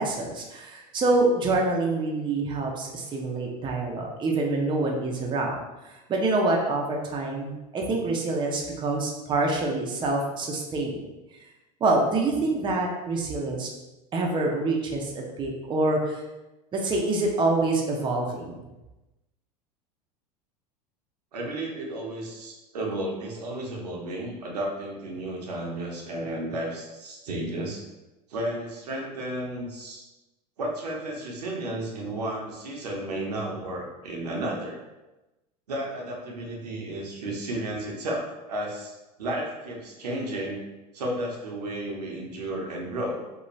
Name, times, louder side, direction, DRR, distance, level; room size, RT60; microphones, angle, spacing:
voice 1, 0.0-11.0 11.8-13.7 14.1-16.2 16.7-18.6, right 2 dB, 25° right, -1 dB, 0.5 m, -26 dB
voice 2, 21.3-27.8 28.3-30.1 30.6-34.8 35.7-40.6 40.9-43.2, right 1 dB, 80° right, -1 dB, 0.7 m, -33 dB
2.5 x 2.1 x 3.1 m, 1.0 s
hypercardioid pair, 85°, 20 cm